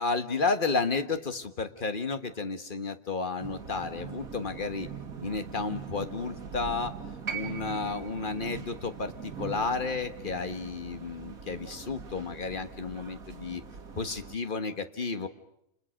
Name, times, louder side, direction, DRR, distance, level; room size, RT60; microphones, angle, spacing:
voice 1, 0.0-4.9 5.2-6.9 7.3-13.6 14.0-15.3, left 4 dB, 35° left, 9 dB, 1.6 m, -32 dB
sound 1, 3.4-14.4, right 6 dB, 85° right, 2.2 m, -43 dB
sound 2, 7.3-11.4 12.6-12.7, right 7 dB, 60° right, 2.9 m, -43 dB
29.5 x 29.0 x 6.5 m, 0.80 s
omnidirectional pair, 1.5 m